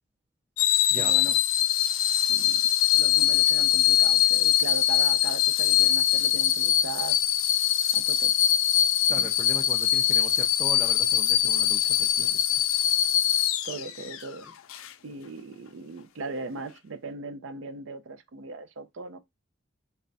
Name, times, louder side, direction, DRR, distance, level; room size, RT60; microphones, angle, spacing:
sound 1, 0.6-14.2 14.7-14.9, left 11 dB, 90° left, 0.4 m, -23 dB
voice 1, 1.0-1.4 2.3-2.6 2.9-7.2 7.9-8.3 9.2-9.3 13.6-14.5 15.0-19.2, right 3 dB, 70° right, 0.5 m, -38 dB
voice 2, 9.1-12.6, right 1 dB, 5° right, 0.4 m, -39 dB
3.3 x 2.2 x 3.9 m
head